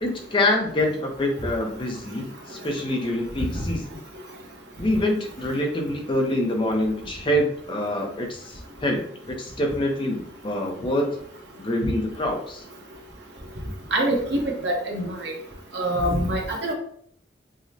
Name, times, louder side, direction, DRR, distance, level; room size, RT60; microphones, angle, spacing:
voice 1, 0.0-4.0 4.8-11.1 11.6-12.6, left 1 dB, 30° left, 2 dB, 0.5 m, -26 dB
voice 2, 13.9-15.3 15.7-16.7, right 1 dB, 75° right, 0 dB, 0.9 m, -25 dB
4.8 x 2.1 x 2.7 m, 0.63 s
head